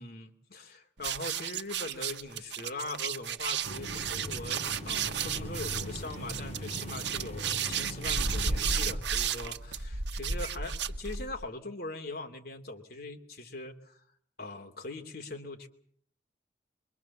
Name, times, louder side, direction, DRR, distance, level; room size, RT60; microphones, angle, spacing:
voice 1, 0.0-14.0 14.4-15.7, left 2 dB, 60° left, 3 dB, 2.8 m, -41 dB
sound 1, 1.0-11.4, right 6 dB, 80° right, 1.0 m, -33 dB
sound 2, 3.6-9.0, equal, 40° left, 5.4 m, -40 dB
24.0 x 23.5 x 7.2 m, 0.62 s
head